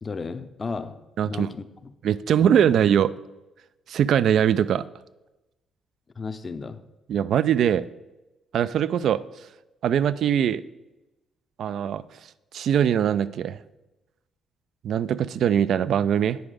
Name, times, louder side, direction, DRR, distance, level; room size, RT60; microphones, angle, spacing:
voice 1, 0.0-1.9 2.4-2.7 6.2-6.8, left 4 dB, 35° left, 11 dB, 0.6 m, -34 dB
voice 2, 1.2-1.5 2.0-3.1 3.9-4.8 7.1-7.9 8.5-9.2 9.8-10.6 11.6-12.0 12.5-13.6 14.8-16.4, right 9 dB, 70° right, 16 dB, 0.3 m, -21 dB
9.2 x 5.0 x 4.9 m, 1.0 s
cardioid pair, 90°, 0 cm